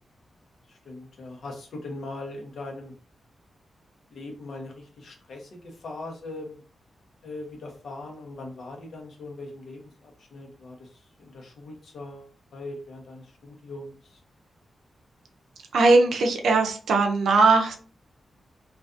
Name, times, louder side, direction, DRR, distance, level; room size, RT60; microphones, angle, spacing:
voice 1, 0.7-2.9 4.1-6.6 7.2-14.2, left 2 dB, 75° left, 1 dB, 0.8 m, -40 dB
voice 2, 15.7-17.8, right 3 dB, 85° right, 3 dB, 0.5 m, -19 dB
2.4 x 2.3 x 2.5 m, 0.40 s
cardioid pair, 80°, 0 cm